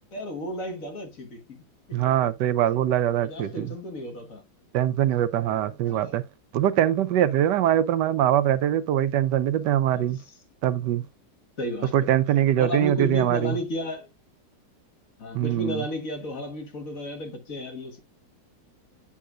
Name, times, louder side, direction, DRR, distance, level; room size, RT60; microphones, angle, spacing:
voice 1, 0.1-1.6 1.9-2.0 3.2-4.4 5.9-6.2 9.9-10.1 11.6-11.9 12.6-14.1 15.2-18.0, left 1 dB, 50° left, 1.8 m, -33 dB
voice 2, 1.9-3.7 4.7-6.2 6.5-10.2 10.6-11.1 11.9-13.6 15.3-15.8, right 11 dB, 80° right, 1.2 m, -23 dB
8.6 x 5.6 x 2.4 m
omnidirectional pair, 1.8 m